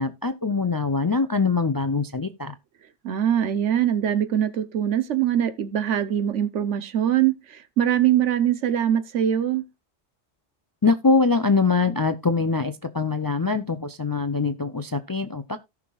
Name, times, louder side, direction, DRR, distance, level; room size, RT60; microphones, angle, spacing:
voice 1, 0.0-2.5 10.8-15.6, left 4 dB, 35° left, 0.3 m, -23 dB
voice 2, 3.0-9.6, right 10 dB, 80° right, 1.1 m, -23 dB
17.5 x 5.9 x 2.3 m
omnidirectional pair, 1.2 m